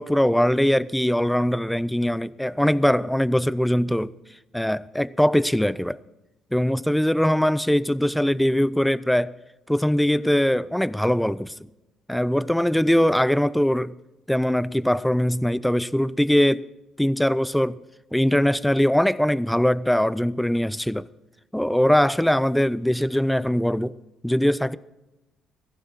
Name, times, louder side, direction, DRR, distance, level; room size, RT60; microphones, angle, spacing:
voice 1, 0.0-4.1 4.5-6.0 6.5-9.3 9.7-11.5 12.1-13.9 14.3-16.6 17.0-17.8 18.1-21.0 21.5-23.9 24.2-24.8, equal, 5° left, 0.5 m, -21 dB
17.0 x 15.0 x 4.4 m
hypercardioid pair, 45°, 0 cm